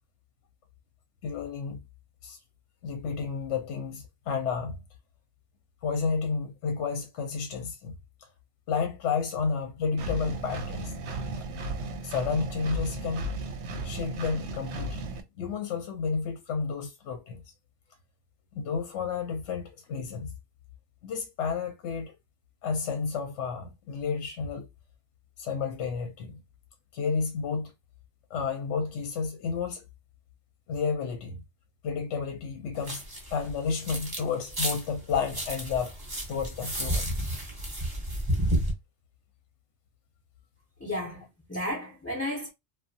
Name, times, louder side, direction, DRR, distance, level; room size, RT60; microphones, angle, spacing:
voice 1, 1.2-1.8 2.2-2.4 2.8-4.8 5.8-7.9 8.7-10.9 12.0-13.3 13.8-15.1 15.4-17.4 18.6-20.3 21.0-22.1 22.6-24.7 25.4-26.4 26.9-27.7 28.3-29.8 30.7-31.4 31.8-33.0 33.3-35.9 36.3-37.2, left 5 dB, 75° left, 0.9 m, -31 dB
Engine, 10.0-15.2, right 1 dB, 70° right, 0.8 m, -35 dB
sound 1, 32.8-34.2 34.5-38.7, right 1 dB, 20° right, 0.8 m, -31 dB
voice 2, 40.8-42.5, left 1 dB, 15° left, 0.6 m, -33 dB
2.6 x 2.2 x 2.6 m
omnidirectional pair, 1.2 m